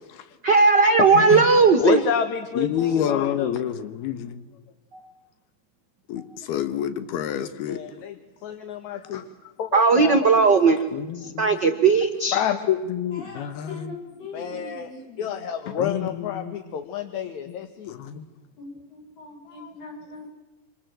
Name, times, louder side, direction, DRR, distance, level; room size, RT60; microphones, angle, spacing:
voice 1, 0.4-2.0 2.8-2.9 9.7-10.8 11.1-12.4, right 4 dB, 65° right, 7 dB, 1.0 m, -17 dB
voice 2, 1.1-1.7 13.1-15.3 16.1-16.2 18.6-20.3, left 2 dB, 40° left, 2 dB, 7.5 m, -41 dB
voice 3, 1.8-3.6 6.5-6.6 7.6-9.3 9.6-10.5 12.3-12.8 14.3-14.9 15.2-18.0 19.6-19.7, left 8 dB, 60° left, 8 dB, 2.5 m, -29 dB
voice 4, 2.6-4.4 6.1-6.2 6.5-7.8 10.9-11.1 12.9-13.9 15.8-16.6 18.0-18.2, left 10 dB, 85° left, 11 dB, 3.4 m, -28 dB
28.0 x 26.5 x 7.7 m, 1.1 s
omnidirectional pair, 4.4 m